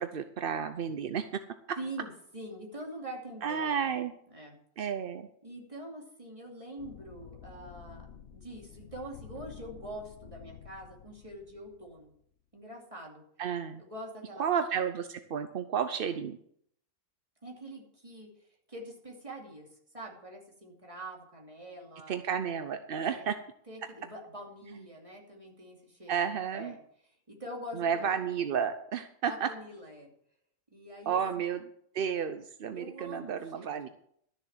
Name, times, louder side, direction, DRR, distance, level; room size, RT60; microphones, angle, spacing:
voice 1, 0.0-1.4 1.7-1.8 3.4-4.1 4.8-5.3 13.4-13.8 14.4-16.4 22.1-23.4 26.1-26.7 27.7-29.5 31.1-31.7 31.9-33.9, right 7 dB, 55° right, 9 dB, 0.6 m, -32 dB
voice 2, 1.8-4.0 4.3-4.6 5.4-8.1 8.3-12.1 12.5-13.2 13.8-14.4 17.4-18.3 18.7-19.7 19.9-22.2 23.0-23.2 23.7-26.1 26.5-26.8 27.3-28.1 29.3-30.1 30.7-31.2 32.7-33.8, right 1 dB, 20° right, -1 dB, 2.7 m, -44 dB
sound 1, 6.8-12.2, left 8 dB, 55° left, 1.0 m, -50 dB
12.5 x 7.0 x 7.1 m, 0.67 s
omnidirectional pair, 1.7 m